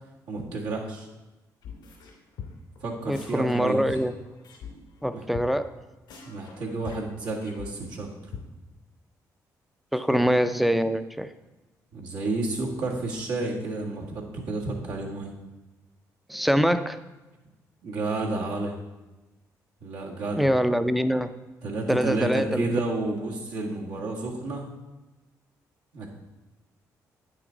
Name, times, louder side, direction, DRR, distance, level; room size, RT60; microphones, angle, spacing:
voice 1, 0.3-1.1 2.8-3.8 5.1-5.2 6.2-8.1 10.1-10.2 11.9-15.3 17.8-18.7 19.8-20.5 21.6-24.6 25.9-26.1, right 2 dB, 80° right, -4 dB, 1.7 m, -31 dB
sound 1, 1.6-2.1 2.4-2.8 3.1-4.7 5.0-5.1 5.3-5.5 5.7-5.8 6.1-8.0 8.3-8.4, left 7 dB, 85° left, 2.5 m, -41 dB
voice 2, 3.1-4.1 5.0-5.7 9.9-11.3 16.3-17.0 20.4-21.3 21.9-22.8, equal, ahead, 10 dB, 0.5 m, -24 dB
8.8 x 6.1 x 3.9 m, 1.1 s
supercardioid pair, 70°, 7 cm